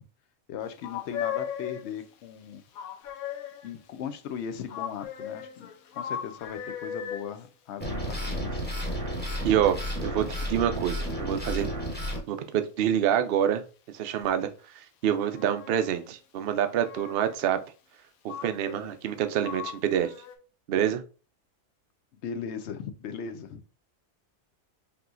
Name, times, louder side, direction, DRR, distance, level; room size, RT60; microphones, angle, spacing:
voice 1, 0.5-2.6 3.6-5.7 6.0-8.7 22.1-23.6, left 7 dB, 65° left, 0.7 m, -38 dB
sound 1, 0.8-2.0 2.8-3.8 4.7-7.4 14.2-14.3 15.0-15.9 16.6-17.4 18.3-19.1 19.4-20.4, left 8 dB, 85° left, 1.1 m, -37 dB
sound 2, 7.8-12.2, equal, 10° left, 1.0 m, -32 dB
voice 2, 9.4-11.7 12.3-13.6 13.9-14.5 14.8-17.6 18.2-20.1 20.7-21.0, right 10 dB, 65° right, 0.6 m, -27 dB
5.3 x 2.9 x 2.5 m
omnidirectional pair, 1.5 m